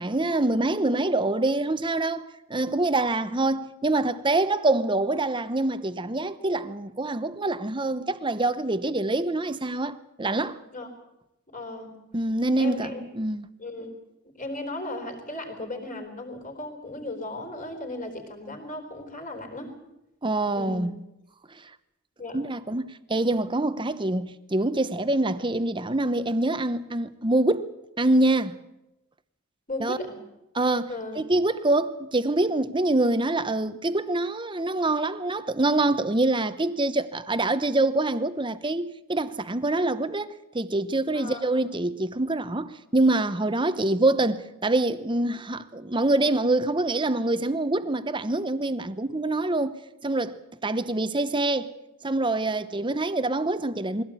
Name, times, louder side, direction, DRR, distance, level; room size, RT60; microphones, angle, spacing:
voice 1, 0.0-10.6 12.1-13.5 20.2-20.9 22.3-27.7 28.0-28.6 29.8-30.0 30.5-40.3 40.5-51.7 52.0-54.0, right 2 dB, 25° right, 0.9 m, -25 dB
voice 2, 11.5-11.9 12.6-13.0 13.6-13.9 14.4-19.7 20.5-20.9 22.2-22.5 29.7-30.2 30.9-31.2 41.1-41.5, left 2 dB, 40° left, 4.1 m, -36 dB
22.0 x 16.5 x 8.4 m
head